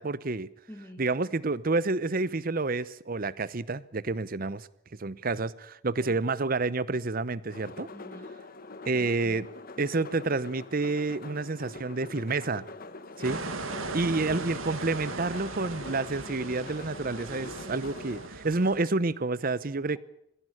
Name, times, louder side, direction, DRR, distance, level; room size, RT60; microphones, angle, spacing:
voice 1, 0.0-0.5 1.0-4.7 5.0-7.9 8.8-9.5 9.8-12.6 13.2-13.4 13.9-20.0, right 3 dB, 45° right, 0.8 m, -29 dB
voice 2, 0.7-1.0 6.0-6.2 7.9-8.3 13.1-13.4, equal, 10° left, 2.1 m, -47 dB
sound 1, 7.5-18.3, left 3 dB, 45° left, 1.3 m, -44 dB
sound 2, 13.2-18.8, right 3 dB, 75° right, 1.9 m, -38 dB
21.5 x 15.5 x 9.9 m
head